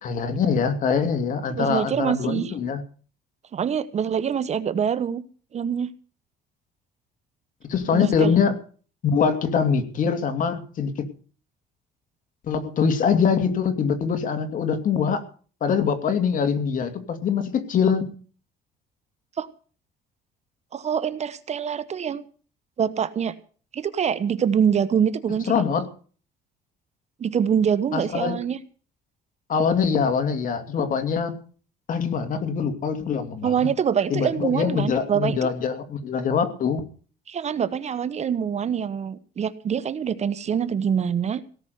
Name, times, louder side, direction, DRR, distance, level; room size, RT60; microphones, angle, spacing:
voice 1, 0.0-2.8 7.7-8.6 9.0-11.1 12.4-15.2 15.6-18.2 25.5-25.9 27.9-28.4 29.5-31.4 31.9-33.7 34.1-36.8, left 6 dB, 50° left, 7 dB, 2.6 m, -23 dB
voice 2, 1.5-2.5 3.5-5.2 5.5-5.9 7.9-8.3 19.4-19.5 20.7-22.2 22.8-23.3 23.7-25.5 27.2-28.6 33.4-35.4 37.3-41.4, right 8 dB, 40° right, 13 dB, 1.2 m, -25 dB
17.5 x 6.2 x 9.5 m, 0.41 s
cardioid pair, 110°, 17 cm